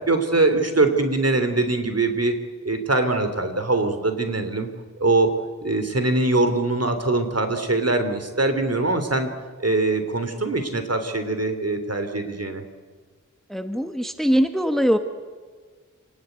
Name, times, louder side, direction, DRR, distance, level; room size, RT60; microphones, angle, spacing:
voice 1, 0.1-2.4 2.6-4.7 5.0-5.3 5.6-9.3 9.6-12.6, right 2 dB, 50° right, 8 dB, 3.3 m, -22 dB
voice 2, 13.5-15.0, equal, ahead, 8 dB, 1.3 m, -21 dB
28.0 x 19.0 x 9.2 m, 1.5 s
wide cardioid pair, 70°, 31 cm